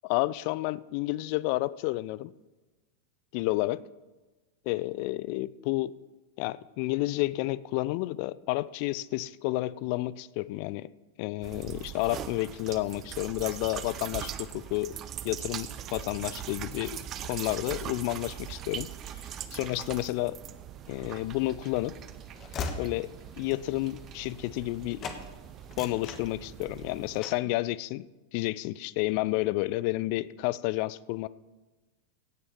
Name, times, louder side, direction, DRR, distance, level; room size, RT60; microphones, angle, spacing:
voice 1, 0.0-2.3 3.3-3.8 4.7-5.9 6.4-10.9 11.2-14.9 15.2-18.9 19.3-20.4 20.9-22.0 22.8-23.1 23.4-25.0 25.8-28.1 28.3-31.3, left 19 dB, 45° left, 19 dB, 0.4 m, -30 dB
sound 1, 11.4-27.2, right 10 dB, 30° right, 0.7 m, -41 dB
Train / Slam, 21.1-24.7 25.0-25.2 25.6-26.8 27.2-27.5, left 5 dB, 30° left, 1.3 m, -40 dB
16.5 x 6.3 x 6.0 m, 1.2 s
figure-of-eight pair, 90°, 0 cm